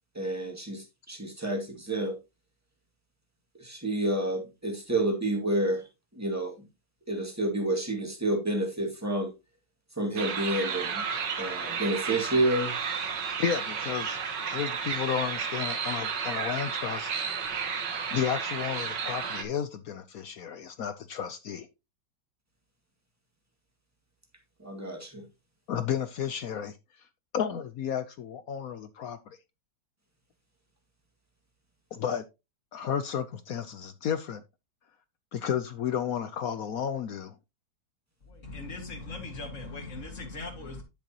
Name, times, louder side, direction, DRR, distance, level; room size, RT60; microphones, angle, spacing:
voice 1, 0.1-2.2 3.6-5.9 6.1-6.7 7.1-9.3 10.0-11.0 11.4-12.8 24.6-25.2, right 1 dB, 10° right, 2.0 m, -29 dB
sound 1, 10.2-19.4, right 6 dB, 80° right, 2.0 m, -32 dB
voice 2, 13.4-14.2 14.5-17.1 18.1-21.7 25.7-26.8 27.3-29.4 31.9-32.2 32.7-34.4 35.3-37.3, left 8 dB, 65° left, 1.0 m, -32 dB
voice 3, 38.2-40.8, left 3 dB, 45° left, 2.3 m, -39 dB
10.5 x 6.8 x 2.9 m
omnidirectional pair, 1.9 m